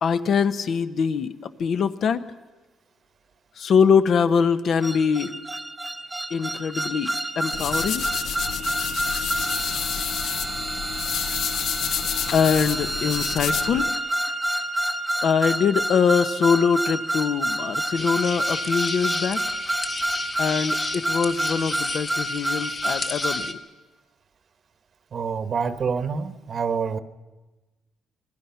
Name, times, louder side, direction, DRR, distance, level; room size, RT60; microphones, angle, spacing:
voice 1, 0.0-1.3 1.6-2.2 3.6-5.3 6.3-8.1 12.3-13.9 15.2-19.4 20.4-23.6, left 6 dB, 65° left, 10 dB, 1.1 m, -23 dB
sound 1, 4.8-23.5, right 1 dB, 15° right, 1.0 m, -28 dB
sound 2, 7.5-13.9, left 9 dB, 80° left, 0.6 m, -30 dB
sound 3, 17.9-23.5, left 3 dB, 45° left, 1.9 m, -33 dB
voice 2, 25.1-27.0, right 5 dB, 50° right, 11 dB, 1.1 m, -27 dB
27.0 x 19.5 x 5.8 m, 1.2 s
cardioid pair, 100°, 0 cm